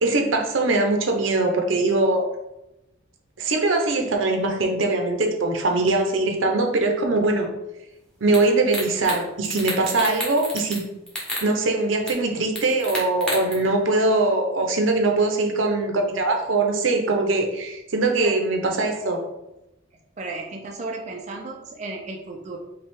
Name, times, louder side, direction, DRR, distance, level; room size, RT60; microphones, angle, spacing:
voice 1, 0.0-2.2 3.4-7.5 8.2-10.8 11.4-19.2, right 2 dB, 75° right, 3 dB, 0.7 m, -22 dB
sound 1, 8.3-8.4 8.7-9.2 9.4-10.8 11.1-11.5 12.1-12.2 12.6-13.5, equal, 5° left, 1.0 m, -30 dB
voice 2, 18.0-18.4 20.2-22.6, right 3 dB, 35° right, 1 dB, 0.4 m, -34 dB
5.2 x 2.3 x 3.6 m, 0.92 s
head